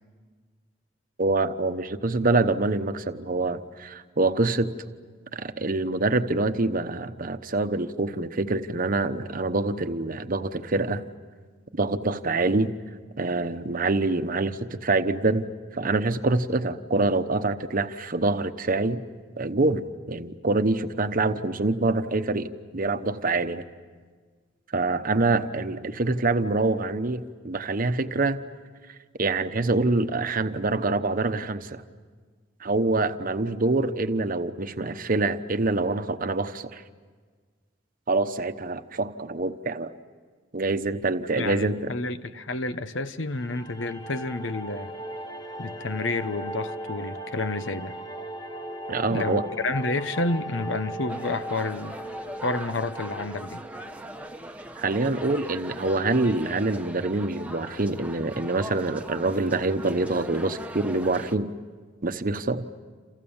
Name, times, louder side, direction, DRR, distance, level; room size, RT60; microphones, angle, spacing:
voice 1, 1.2-4.7 5.3-11.0 11.7-12.7 13.2-15.5 15.7-19.0 19.4-23.6 24.7-28.4 29.2-31.8 32.6-36.8 38.1-39.9 40.5-41.9 48.9-49.5 54.8-61.5 62.0-62.7, right 2 dB, 45° right, 1.0 m, -25 dB
voice 2, 41.4-44.9 45.6-48.0 49.1-52.0 52.4-53.6, left 2 dB, 75° left, 1.0 m, -30 dB
sound 1, 43.3-54.4, right 1 dB, 20° left, 1.5 m, -38 dB
sound 2, 51.1-61.3, right 1 dB, 10° right, 1.1 m, -40 dB
28.5 x 28.5 x 7.2 m
head